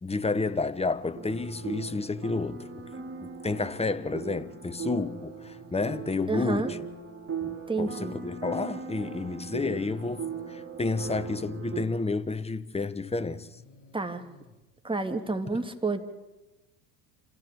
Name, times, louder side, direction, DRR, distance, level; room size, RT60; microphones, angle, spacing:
voice 1, 0.0-2.8 3.2-6.8 7.4-13.5, left 3 dB, 10° left, 1.3 m, -30 dB
sound 1, 1.1-11.9, right 6 dB, 25° right, 5.2 m, -39 dB
Breathing, 1.4-3.0 4.9-6.6 7.9-8.0 8.9-10.5 12.0-12.1 12.8-14.6, left 3 dB, 55° left, 7.7 m, -55 dB
voice 2, 6.3-6.7 7.7-8.1 13.9-14.2 14.8-16.0, right 3 dB, 10° right, 2.8 m, -29 dB
27.0 x 15.0 x 8.6 m
hypercardioid pair, 70°, 50 cm